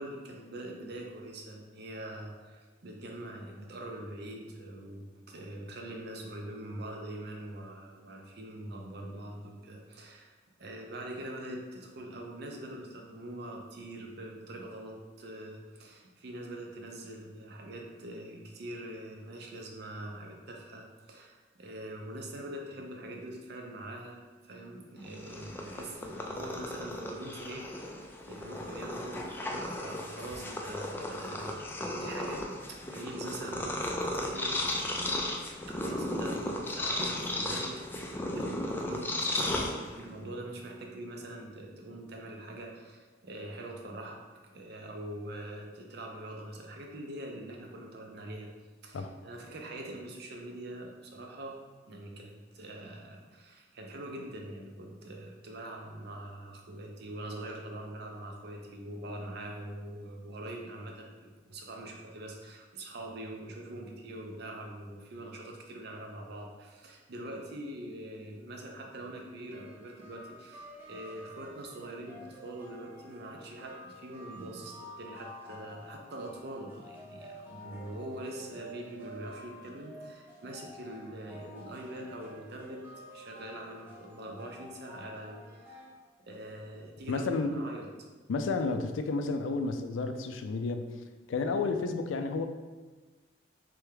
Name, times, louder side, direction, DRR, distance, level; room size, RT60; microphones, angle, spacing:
voice 1, 0.0-10.3 10.6-34.6 35.7-37.8 38.3-44.2 44.5-48.5 48.8-51.6 51.9-82.8 83.1-85.4 85.7-85.8 86.2-87.9, right 1 dB, 60° right, 1 dB, 0.6 m, -43 dB
Purr, 25.0-40.2, left 1 dB, 10° left, 0.3 m, -35 dB
sound 1, 69.5-85.9, equal, 10° right, 0.7 m, -50 dB
voice 2, 87.1-87.6 88.3-90.9 91.3-92.5, left 3 dB, 85° left, 7 dB, 0.4 m, -31 dB
3.4 x 3.3 x 3.3 m, 1.3 s
head